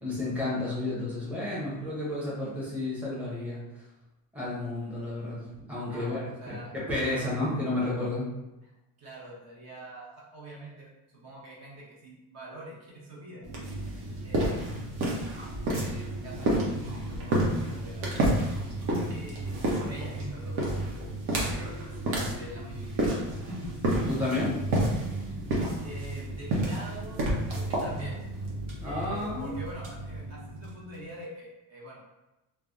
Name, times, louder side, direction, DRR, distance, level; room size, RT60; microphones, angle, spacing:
voice 1, 0.0-3.6 4.3-6.5 6.9-8.3 24.1-24.5 28.8-29.6, left 2 dB, 5° right, -7 dB, 0.7 m, -31 dB
voice 2, 5.9-6.7 7.0-7.3 8.6-8.7 9.0-13.5 13.9-16.5 16.9-18.4 19.1-21.1 21.4-23.0 23.5-23.8 25.8-27.2 27.5-28.2 28.8-32.0, right 1 dB, 45° right, -4 dB, 0.8 m, -45 dB
sound 1, 13.4-31.0, right 1 dB, 80° right, 0.9 m, -30 dB
3.2 x 2.1 x 2.5 m, 0.99 s
cardioid pair, 140°, 37 cm